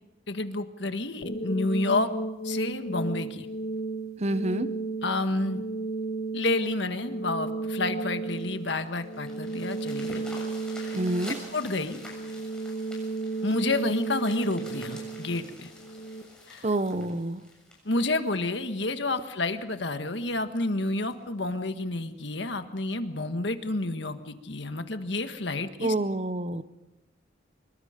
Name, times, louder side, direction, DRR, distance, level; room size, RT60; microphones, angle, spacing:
voice 1, 0.3-2.1 2.4-3.5 5.0-5.7 6.3-10.2 10.8-11.0 11.5-12.0 13.4-15.7 16.5-16.7 17.9-25.9, left 2 dB, 65° left, 8 dB, 1.6 m, -29 dB
sound 1, 1.2-16.2, right 3 dB, 50° left, 1.8 m, -34 dB
voice 2, 4.2-4.7 10.9-11.4 16.6-17.4 25.8-26.6, right 1 dB, 35° right, 13 dB, 0.8 m, -27 dB
sound 2, 8.4-18.9 19.4-19.5 20.0-20.1 20.4-20.5 20.9-21.1 22.0-22.1, left 2 dB, 5° left, 7.0 m, -47 dB
25.5 x 22.0 x 5.2 m, 1.0 s
head